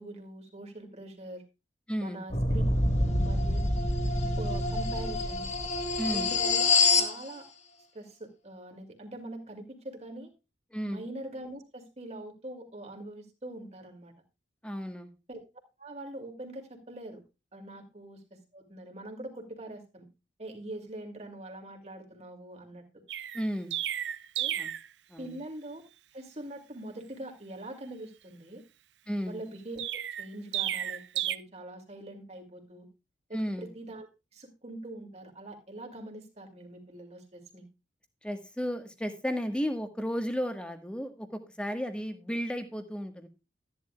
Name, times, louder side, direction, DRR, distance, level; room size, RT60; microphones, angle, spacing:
voice 1, 0.0-1.4 2.0-2.6 2.9-3.6 4.4-5.5 6.1-7.5 7.9-10.3 10.8-14.1 15.3-15.4 15.8-17.2 17.5-18.2 18.5-20.1 20.4-22.8 24.4-24.6 25.2-25.8 26.1-28.6 29.3-32.9 33.3-34.1 34.3-37.7, right 1 dB, 40° right, 3 dB, 2.5 m, -43 dB
voice 2, 1.9-2.2 6.0-6.3 10.7-11.0 14.6-15.1 23.3-23.8 24.6-24.7 25.1-25.4 29.1-29.4 33.3-33.7 38.2-43.3, equal, 5° left, 6 dB, 1.3 m, -33 dB
sound 1, 2.3-7.1, left 3 dB, 40° left, 1.4 m, -26 dB
Chirp tweet, 23.1-24.9 29.8-31.4, right 11 dB, 80° right, 0.6 m, -32 dB
13.5 x 11.0 x 2.3 m, 0.27 s
head